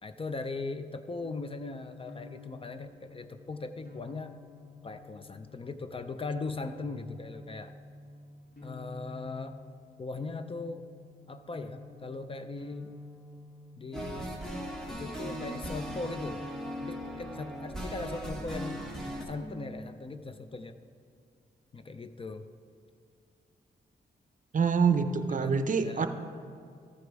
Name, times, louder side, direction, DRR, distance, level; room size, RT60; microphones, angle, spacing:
voice 1, 0.0-4.4 4.8-7.7 8.6-9.6 10.0-10.9 11.3-13.0 13.8-14.4 14.9-16.4 16.8-18.9 19.2-20.8 21.7-22.4 25.4-26.1, left 3 dB, 30° left, 10 dB, 0.4 m, -39 dB
sound 1, 1.2-17.5 18.3-20.3, left 2 dB, 60° left, 2.4 m, -49 dB
sound 2, 13.9-19.2, equal, 5° left, 1.3 m, -38 dB
voice 2, 24.5-26.1, right 5 dB, 45° right, 9 dB, 0.6 m, -26 dB
14.0 x 5.0 x 4.7 m, 2.3 s
cardioid pair, 95°, 18 cm